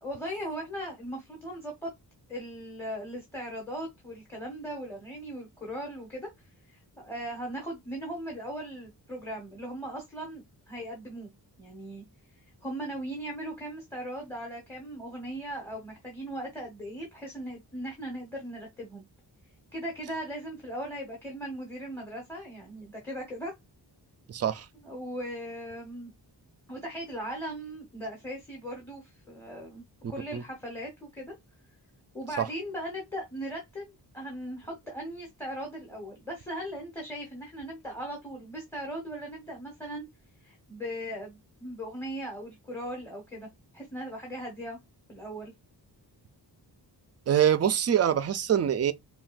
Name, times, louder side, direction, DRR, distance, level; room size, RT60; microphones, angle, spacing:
voice 1, 0.0-1.9 2.3-11.3 11.6-12.0 12.6-19.0 19.7-23.5 24.8-26.1 26.7-29.8 30.1-31.3 32.1-40.1 40.4-43.5 43.7-44.8 45.1-45.5, equal, 5° left, 1.1 m, -38 dB
voice 2, 24.3-24.7 30.3-30.4 32.4-32.5 47.3-48.9, right 9 dB, 40° right, 0.4 m, -24 dB
5.8 x 2.3 x 2.5 m
wide cardioid pair, 165°, 42 cm